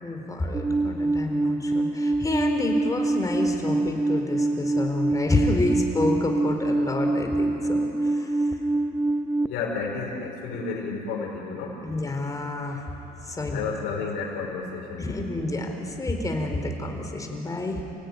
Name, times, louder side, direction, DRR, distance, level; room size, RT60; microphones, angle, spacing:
voice 1, 0.0-8.5 11.8-12.8 13.2-13.6 15.0-17.8, left 2 dB, 20° left, 3 dB, 4.2 m, -29 dB
Alarm, 0.5-9.5, right 2 dB, 10° right, 0.5 m, -25 dB
voice 2, 9.5-11.7 13.5-15.0, left 4 dB, 85° left, -3 dB, 4.8 m, -31 dB
29.5 x 17.0 x 9.8 m, 3.0 s
cardioid pair, 110°, 17 cm